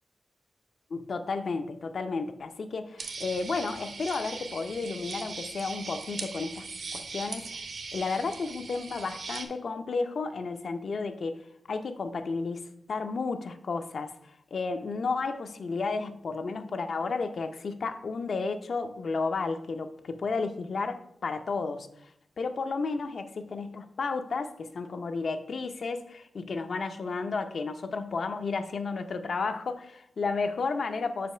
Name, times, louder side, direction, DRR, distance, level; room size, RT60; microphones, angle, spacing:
voice 1, 0.9-6.6 6.9-7.5 7.9-11.4 11.7-21.9 22.4-31.3, left 4 dB, 55° left, 8 dB, 0.5 m, -32 dB
sound 1, 3.0-9.5, right 4 dB, 65° right, 0.9 m, -40 dB
5.2 x 5.1 x 5.6 m, 0.75 s
wide cardioid pair, 150°, 0 cm